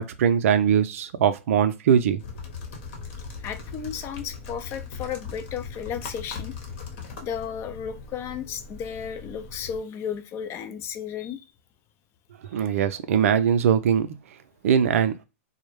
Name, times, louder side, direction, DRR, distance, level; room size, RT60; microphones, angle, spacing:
voice 1, 0.0-2.2 12.5-14.1 14.6-15.1, right 8 dB, 70° right, 0.4 m, -21 dB
sound 1, 2.2-9.8, left 5 dB, 55° left, 0.9 m, -39 dB
voice 2, 3.4-6.6 7.2-11.5, left 8 dB, 35° left, 0.4 m, -34 dB
2.2 x 2.0 x 3.0 m
hypercardioid pair, 120°, 8 cm